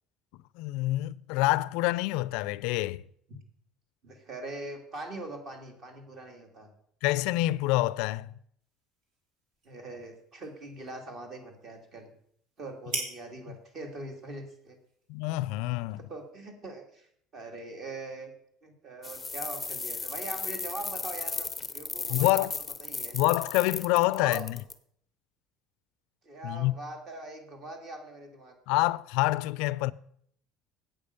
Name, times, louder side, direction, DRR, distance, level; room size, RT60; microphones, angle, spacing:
voice 1, 0.6-3.0 7.0-8.3 13.5-13.6 15.1-16.0 22.1-22.5 23.1-24.6 26.4-26.7 28.7-29.9, left 18 dB, 75° left, 0.3 m, -27 dB
voice 2, 4.0-6.7 9.7-12.1 12.6-14.8 16.1-17.1 17.3-18.3 18.6-21.5 21.7-22.4 22.8-23.2 24.1-24.4 26.2-28.8, right 2 dB, 35° right, 1.9 m, -42 dB
sound 1, 8.6-16.3, right 2 dB, 50° right, 3.1 m, -45 dB
sound 2, 19.0-24.7, left 4 dB, 10° left, 0.7 m, -35 dB
8.6 x 8.4 x 6.7 m
cardioid pair, 170°, 0 cm